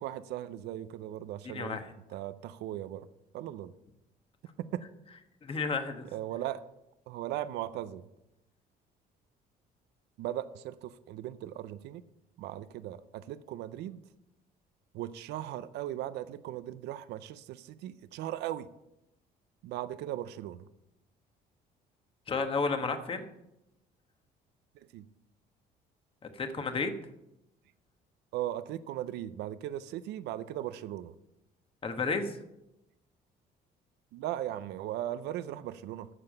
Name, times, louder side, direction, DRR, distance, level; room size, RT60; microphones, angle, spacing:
voice 1, 0.0-1.8 2.1-3.1 3.3-3.7 4.6-4.8 6.1-6.6 7.1-8.1 10.2-12.0 12.4-14.0 14.9-18.7 19.6-20.6 24.9-25.0 28.3-31.1 34.1-36.1, right 12 dB, 80° right, 14 dB, 0.6 m, -38 dB
voice 2, 1.4-1.9 5.4-6.1 22.3-23.3 26.3-26.9 31.8-32.4, left 4 dB, 35° left, 7 dB, 1.3 m, -32 dB
9.9 x 7.0 x 6.5 m, 0.87 s
cardioid pair, 110°, 17 cm